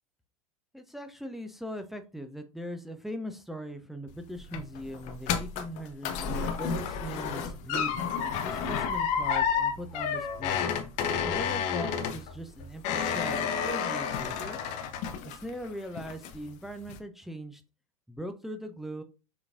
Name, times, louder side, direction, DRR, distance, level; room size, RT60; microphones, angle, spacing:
voice 1, 0.7-8.0 8.4-10.7 11.2-14.6 15.2-17.6 18.1-19.0, equal, ahead, 7 dB, 0.5 m, -40 dB
sound 1, 4.1-15.7 16.0-16.5 16.9-17.0, left 7 dB, 40° left, 0.6 m, -31 dB
6.2 x 2.9 x 2.5 m, 0.30 s
figure-of-eight pair, 85°, 19 cm